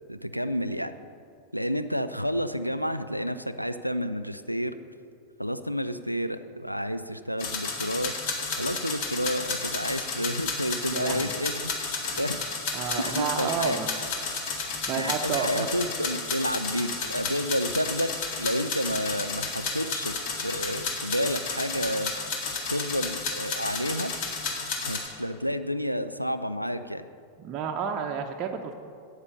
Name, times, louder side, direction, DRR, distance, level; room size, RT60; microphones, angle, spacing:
voice 1, 0.1-1.0 1.5-4.7 5.4-8.1 8.6-11.7 12.2-12.4 13.0-13.8 15.0-20.1 20.4-22.1 22.7-24.1 24.8-27.1, equal, 90° left, 11 dB, 0.5 m, -30 dB
sound 1, 7.4-25.1, left 4 dB, 45° left, 1.9 m, -32 dB
voice 2, 10.9-11.4 12.1-12.2 12.7-13.9 14.9-15.7 27.4-28.7, right 6 dB, 35° right, 3 dB, 0.7 m, -31 dB
9.7 x 8.2 x 6.7 m, 2.3 s
figure-of-eight pair, 90°, 0 cm